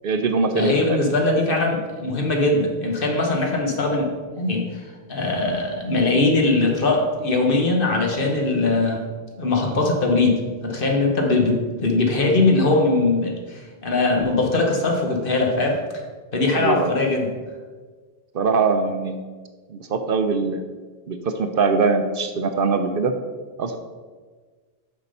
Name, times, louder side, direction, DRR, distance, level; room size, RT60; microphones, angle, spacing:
voice 1, 0.0-1.0 16.6-16.9 18.3-19.2 19.7-20.6 21.1-23.1 23.6-23.8, right 4 dB, 60° right, 7 dB, 0.8 m, -22 dB
voice 2, 0.5-4.1 4.4-9.0 9.4-15.8 16.3-17.3, left 2 dB, 55° left, 2 dB, 1.3 m, -21 dB
6.8 x 5.8 x 5.4 m, 1.4 s
omnidirectional pair, 1.1 m